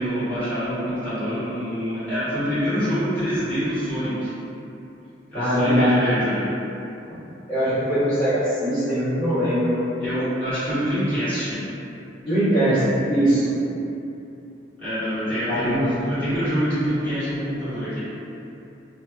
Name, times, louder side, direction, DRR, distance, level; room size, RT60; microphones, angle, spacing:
voice 1, 0.0-4.3 5.3-6.5 10.0-11.6 14.8-18.0, equal, 10° left, -16 dB, 1.4 m, -25 dB
voice 2, 5.3-5.9 7.5-9.8 12.2-13.5 15.5-15.9, equal, 25° left, -20 dB, 1.0 m, -21 dB
2.8 x 2.5 x 2.3 m, 2.8 s
head